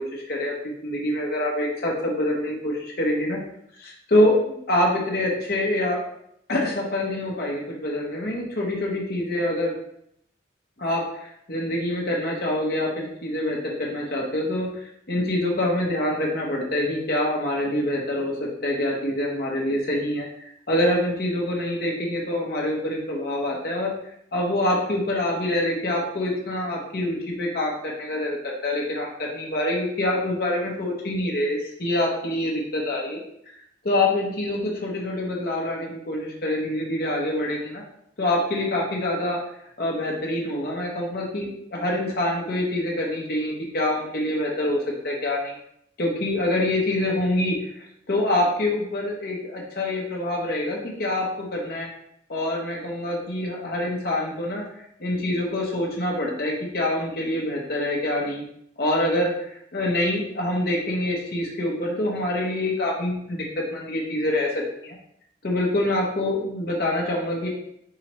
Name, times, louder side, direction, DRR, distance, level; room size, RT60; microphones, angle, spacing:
voice 1, 0.0-3.4 3.8-6.0 6.5-9.7 10.8-11.0 11.5-20.3 20.7-23.9 24.3-33.2 33.8-37.8 38.2-39.4 39.8-44.8 45.0-45.5 46.0-51.9 52.3-54.6 55.0-58.4 58.8-65.0 65.4-67.5, left 1 dB, 55° left, -2 dB, 0.9 m, -25 dB
4.8 x 3.0 x 3.0 m, 0.74 s
head